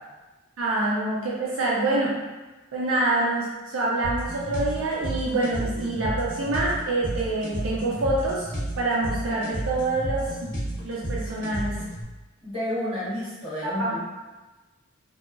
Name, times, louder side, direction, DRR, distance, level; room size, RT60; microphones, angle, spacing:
voice 1, 0.6-2.1 2.7-10.5 10.8-11.8 13.6-14.0, right 2 dB, 70° right, -5 dB, 0.4 m, -26 dB
sound 1, 4.0-12.0, right 1 dB, 65° left, 1.1 m, -32 dB
voice 2, 12.4-14.0, left 1 dB, 30° right, -11 dB, 1.1 m, -30 dB
2.7 x 2.3 x 2.4 m, 1.2 s
head